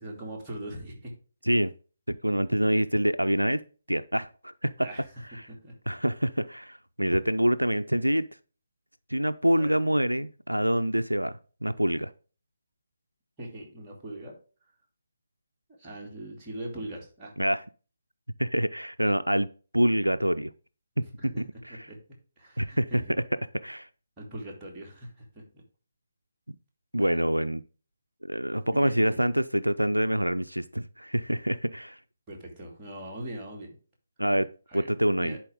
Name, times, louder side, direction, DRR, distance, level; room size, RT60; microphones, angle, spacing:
voice 1, 0.0-1.1 4.8-5.0 5.3-5.8 9.6-9.8 13.4-14.4 15.8-17.3 21.2-21.4 21.7-22.0 22.4-23.1 24.2-25.4 27.0-27.3 28.6-29.2 32.3-33.7 34.7-34.9 35.2-35.4, right 1 dB, 15° right, 2.7 m, -41 dB
voice 2, 2.1-3.6 3.9-4.9 5.3-5.5 5.9-8.3 9.1-12.1 17.4-17.6 18.4-20.5 21.0-21.9 22.6-23.0 23.5-23.9 26.5-26.6 26.9-27.6 28.2-32.0 34.2-35.4, equal, 90° right, 0.4 m, -26 dB
10.5 x 4.5 x 3.6 m
figure-of-eight pair, 145°, 0 cm